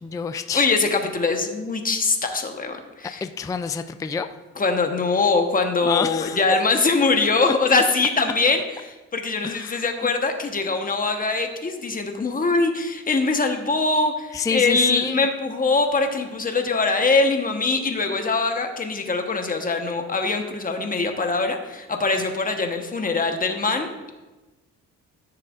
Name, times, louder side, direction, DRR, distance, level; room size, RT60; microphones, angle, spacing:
voice 1, 0.0-0.7 3.2-4.3 5.8-6.4 9.4-9.9 14.3-15.3, left 6 dB, 10° left, 9 dB, 0.3 m, -28 dB
voice 2, 0.5-3.2 4.6-24.1, left 3 dB, 30° left, 4 dB, 1.2 m, -22 dB
14.0 x 6.5 x 2.5 m, 1.1 s
cardioid pair, 90°, 30 cm